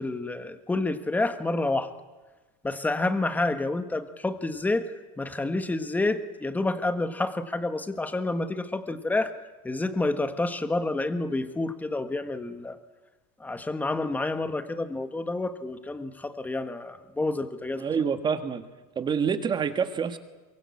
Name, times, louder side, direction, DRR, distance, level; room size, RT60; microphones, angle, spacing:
voice 1, 0.0-1.9 2.6-9.4 9.6-12.8 13.4-17.8, left 2 dB, 10° left, 10 dB, 1.5 m, -29 dB
voice 2, 17.8-18.7 18.9-20.2, right 6 dB, 25° right, 10 dB, 1.6 m, -27 dB
23.0 x 22.5 x 8.6 m, 1.2 s
supercardioid pair, 145°, 20 cm